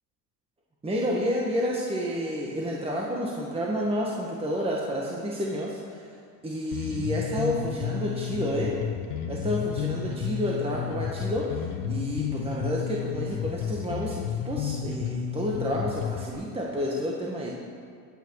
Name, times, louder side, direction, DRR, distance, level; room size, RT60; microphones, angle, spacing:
voice 1, 0.8-6.2 6.4-8.8 9.3-17.5, equal, 15° right, -3 dB, 1.6 m, -30 dB
Bass guitar, 6.7-16.3, left 8 dB, 60° left, 1.3 m, -32 dB
19.5 x 9.0 x 4.8 m, 2.2 s
supercardioid pair, 115°, 38 cm